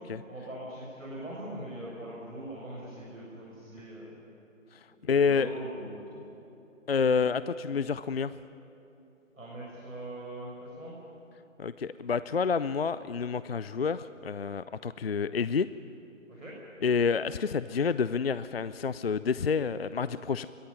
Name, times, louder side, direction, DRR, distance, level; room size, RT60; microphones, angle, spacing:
voice 1, 0.3-4.1 5.0-6.2 9.4-10.9 16.3-16.5, right 1 dB, 85° right, -5 dB, 6.9 m, -41 dB
voice 2, 5.1-5.5 6.9-8.3 11.6-15.7 16.8-20.5, left 5 dB, 50° left, 15 dB, 0.5 m, -28 dB
23.0 x 16.5 x 9.9 m, 2.9 s
figure-of-eight pair, 150°, 39 cm